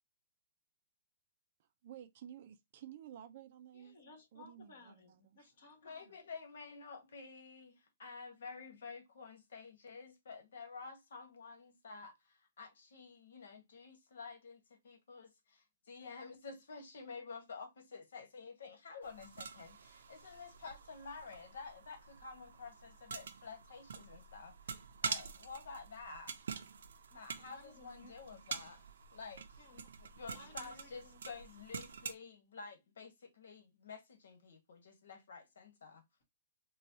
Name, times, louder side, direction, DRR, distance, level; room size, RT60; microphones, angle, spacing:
voice 1, 1.8-4.0 4.3-5.4, right 10 dB, 35° right, 0.4 m, -53 dB
voice 2, 3.7-6.2 27.1-28.6 29.6-31.2, left 3 dB, 55° left, 1.7 m, -60 dB
voice 3, 5.8-26.4 27.1-36.0, left 4 dB, 75° left, 1.3 m, -51 dB
sound 1, 19.0-32.1, right 6 dB, 80° right, 0.6 m, -47 dB
4.1 x 2.3 x 2.7 m
hypercardioid pair, 180°, 0 cm